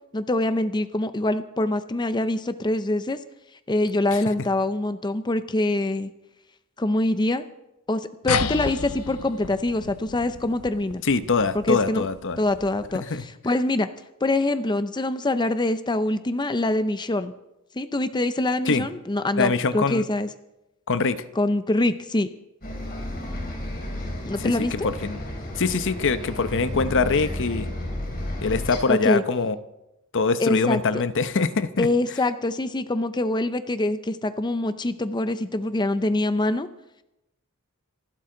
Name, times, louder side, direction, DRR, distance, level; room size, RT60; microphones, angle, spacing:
voice 1, 0.1-3.2 3.7-6.1 6.8-7.4 7.9-11.0 11.5-12.1 12.4-13.9 14.2-17.3 17.8-20.3 21.4-22.3 24.3-24.9 28.9-29.2 30.4-31.0 31.8-36.7, left 2 dB, 20° left, 11 dB, 0.6 m, -24 dB
sound 1, 8.3-13.2, left 5 dB, 90° left, 0.8 m, -32 dB
voice 2, 11.1-12.4 13.1-13.2 18.7-18.9 19.4-20.0 20.9-21.2 24.8-25.2 25.6-27.7 28.4-29.6 30.1-31.9, left 4 dB, 60° left, 12 dB, 0.8 m, -23 dB
Bus, 22.6-28.8, left 1 dB, 45° left, 3.6 m, -32 dB
27.0 x 12.5 x 3.9 m, 0.90 s
head